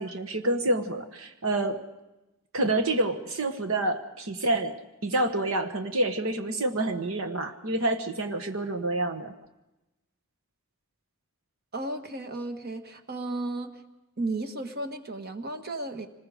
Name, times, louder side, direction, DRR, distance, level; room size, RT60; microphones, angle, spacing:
voice 1, 0.0-1.8 2.5-9.3, right 2 dB, 70° right, 7 dB, 1.4 m, -28 dB
voice 2, 11.7-13.7 14.2-16.1, right 2 dB, 45° right, 6 dB, 1.5 m, -34 dB
25.5 x 20.5 x 5.0 m, 0.99 s
head